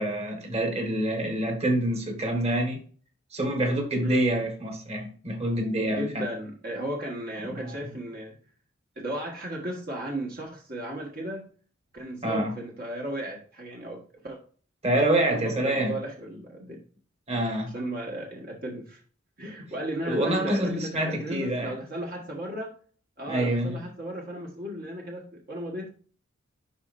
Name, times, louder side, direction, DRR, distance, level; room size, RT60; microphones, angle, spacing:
voice 1, 0.0-2.8 3.3-6.3 7.5-7.8 12.2-12.6 14.8-16.0 17.3-17.7 20.0-21.7 23.3-23.8, right 1 dB, 30° right, 1.7 m, -26 dB
voice 2, 4.0-4.3 5.9-8.4 8.9-11.5 11.9-14.4 15.3-16.8 17.6-19.0 19.4-22.8 23.2-25.9, right 1 dB, 50° right, 1.5 m, -35 dB
11.5 x 4.3 x 2.6 m
head